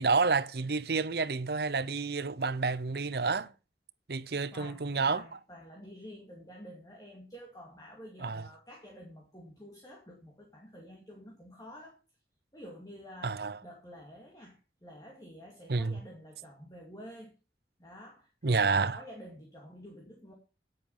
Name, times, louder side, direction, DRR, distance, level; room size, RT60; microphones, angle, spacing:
voice 1, 0.0-3.5 4.1-5.2 8.2-8.4 13.2-13.6 15.7-16.0 18.4-19.0, right 4 dB, 65° right, 0.7 m, -29 dB
voice 2, 4.5-12.0 12.5-17.3 17.8-20.3, equal, 20° left, 2.4 m, -50 dB
9.8 x 8.8 x 5.5 m
head